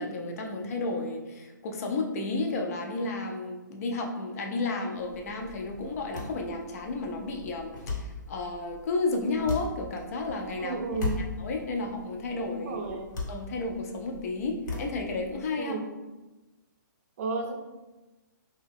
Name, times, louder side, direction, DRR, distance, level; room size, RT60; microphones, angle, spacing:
voice 1, 0.0-10.8 11.4-12.8 13.3-15.8, left 3 dB, 50° left, 2 dB, 0.5 m, -32 dB
sound 1, 5.0-15.5, left 3 dB, 70° left, 1.2 m, -39 dB
voice 2, 10.6-11.2 12.6-13.1 15.6-15.9 17.2-17.5, right 4 dB, 45° right, 3 dB, 0.5 m, -32 dB
2.7 x 2.3 x 3.4 m, 1.1 s
hypercardioid pair, 150°, 11 cm